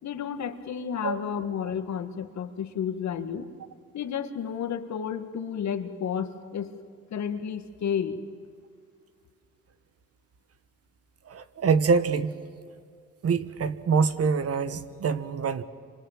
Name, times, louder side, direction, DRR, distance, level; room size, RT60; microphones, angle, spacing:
voice 1, 0.0-3.5 3.9-6.7 7.1-8.2, left 7 dB, 65° left, 9 dB, 2.0 m, -31 dB
voice 2, 11.3-12.3 13.2-15.6, right 5 dB, 50° right, 13 dB, 1.4 m, -25 dB
28.5 x 26.0 x 7.6 m, 2.2 s
cardioid pair, 90°, 30 cm